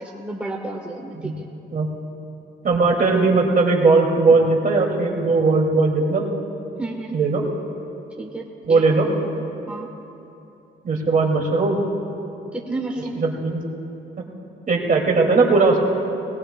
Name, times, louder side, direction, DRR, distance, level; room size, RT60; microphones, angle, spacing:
voice 1, 0.0-1.5 6.8-7.2 8.2-9.3 9.7-9.9 12.5-13.2, right 2 dB, 5° right, 0 dB, 1.1 m, -32 dB
voice 2, 2.6-6.3 7.1-7.4 8.7-9.1 10.8-11.8 13.1-13.6 14.7-15.9, right 3 dB, 45° right, 0 dB, 2.3 m, -18 dB
20.5 x 19.0 x 2.2 m, 2.9 s
cardioid pair, 90°, 20 cm